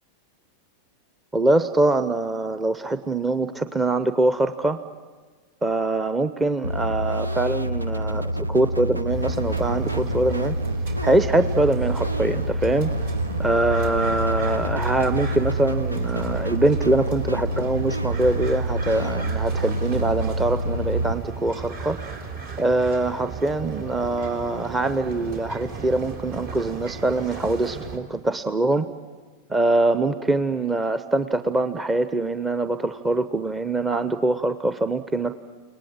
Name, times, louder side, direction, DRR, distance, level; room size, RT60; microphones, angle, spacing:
voice 1, 1.3-4.8 5.6-10.6 11.0-12.9 13.4-22.0 22.6-28.9 29.5-35.4, right 2 dB, 15° right, 12 dB, 0.8 m, -23 dB
sound 1, 6.6-21.1, equal, 85° right, 0.8 m, -27 dB
sound 2, 9.1-28.0, right 5 dB, 55° right, 3.7 m, -34 dB
30.0 x 19.5 x 8.9 m, 1.4 s
figure-of-eight pair, 90°, 0 cm